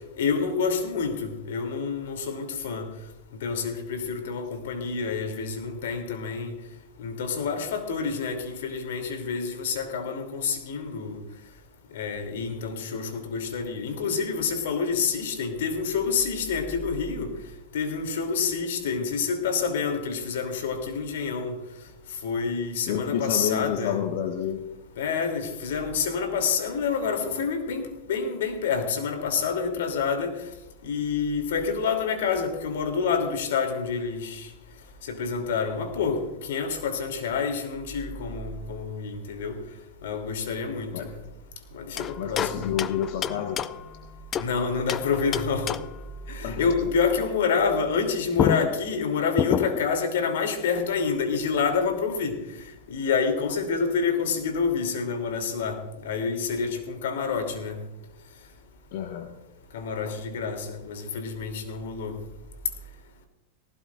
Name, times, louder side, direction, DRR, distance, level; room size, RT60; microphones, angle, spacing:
voice 1, 0.2-2.9 3.4-6.5 7.0-11.2 11.9-17.3 17.7-21.6 22.2-24.0 25.0-30.3 30.8-34.5 35.1-39.6 40.0-41.1 41.7-42.7 44.4-45.8 46.3-52.4 52.9-57.8 59.7-62.2, left 5 dB, 85° left, 5 dB, 3.0 m, -28 dB
voice 2, 22.8-24.7 40.9-41.1 42.2-43.6 46.4-46.6 58.9-59.3, left 9 dB, 65° left, 3 dB, 1.5 m, -29 dB
sound 1, 42.0-44.5 44.9-46.1 48.0-48.1 48.4-50.0, left 8 dB, 30° left, 0.5 m, -29 dB
18.5 x 16.5 x 2.5 m, 0.92 s
supercardioid pair, 130°, 0 cm